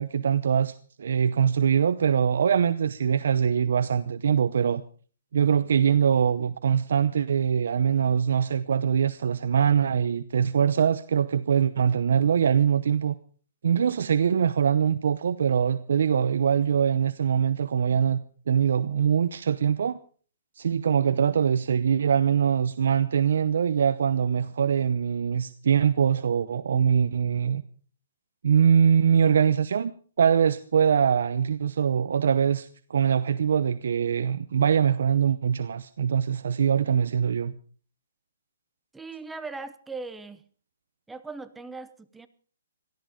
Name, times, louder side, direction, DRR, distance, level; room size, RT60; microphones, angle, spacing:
voice 1, 0.0-4.8 5.3-13.1 13.6-20.0 20.6-27.6 28.4-29.9 30.2-37.5, right 7 dB, 65° right, 12 dB, 0.8 m, -23 dB
voice 2, 38.9-40.4 41.1-42.3, right 3 dB, 5° right, 11 dB, 0.7 m, -39 dB
18.0 x 13.5 x 5.2 m, 0.43 s
hypercardioid pair, 165°, 0 cm